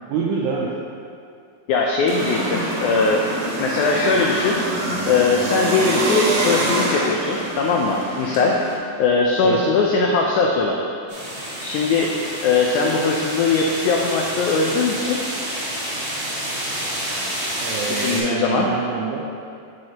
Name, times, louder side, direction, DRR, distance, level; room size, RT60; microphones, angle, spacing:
voice 1, 0.1-0.7 9.4-9.6 17.6-19.2, right 5 dB, 85° right, -3 dB, 1.8 m, -25 dB
voice 2, 1.7-3.2 3.6-4.6 5.1-8.6 9.0-10.8 11.6-12.1 12.4-15.2 17.9-18.7, left 4 dB, 85° left, -1 dB, 1.7 m, -20 dB
sound 1, 2.1-8.8, right 1 dB, 70° right, 1.8 m, -25 dB
sound 2, 11.1-18.2, right 1 dB, 45° right, 1.8 m, -29 dB
6.4 x 6.3 x 2.9 m, 2.4 s
omnidirectional pair, 4.1 m